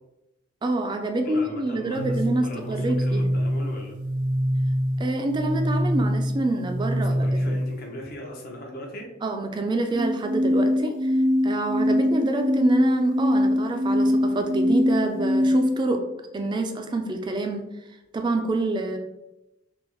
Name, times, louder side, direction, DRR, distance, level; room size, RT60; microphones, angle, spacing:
voice 1, 0.6-3.3 5.0-7.6 9.2-11.1 11.4-16.0 16.3-17.6 18.1-19.0, right 2 dB, 25° right, 5 dB, 0.3 m, -26 dB
voice 2, 1.2-4.0 7.0-9.1, left 1 dB, 50° left, 1 dB, 0.6 m, -39 dB
sound 1, 1.9-7.9 9.9-15.9, equal, 80° right, 0.7 m, -24 dB
3.4 x 2.0 x 3.0 m, 0.92 s
head